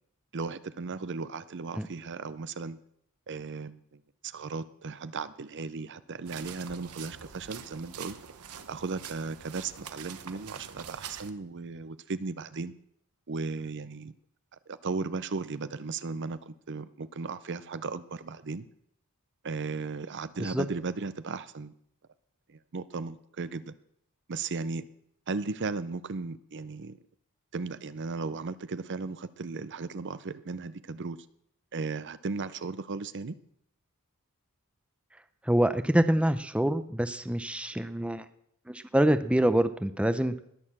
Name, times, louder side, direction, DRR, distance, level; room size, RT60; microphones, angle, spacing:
voice 1, 0.3-2.8 3.3-8.2 8.7-12.7 13.3-14.1 14.7-18.7 19.4-21.7 22.5-23.7 24.3-24.9 25.3-27.0 27.5-31.2 31.7-33.4, right 4 dB, 55° right, 14 dB, 0.6 m, -36 dB
sound 1, 6.2-11.3, right 8 dB, 85° right, 1.0 m, -45 dB
voice 2, 35.4-38.2 38.7-40.4, right 1 dB, 5° right, 11 dB, 0.6 m, -26 dB
19.5 x 6.8 x 7.4 m, 0.72 s
head